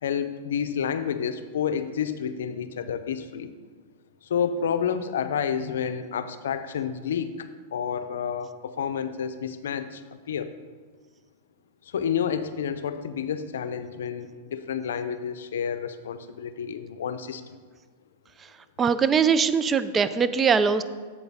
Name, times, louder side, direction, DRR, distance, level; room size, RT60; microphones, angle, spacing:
voice 1, 0.0-3.5 4.2-10.0 10.3-10.5 11.8-17.4, left 7 dB, 80° left, 11 dB, 0.6 m, -29 dB
voice 2, 18.8-20.8, right 6 dB, 20° right, 13 dB, 0.4 m, -21 dB
7.8 x 7.5 x 3.6 m, 1.5 s
hypercardioid pair, 115°, 0 cm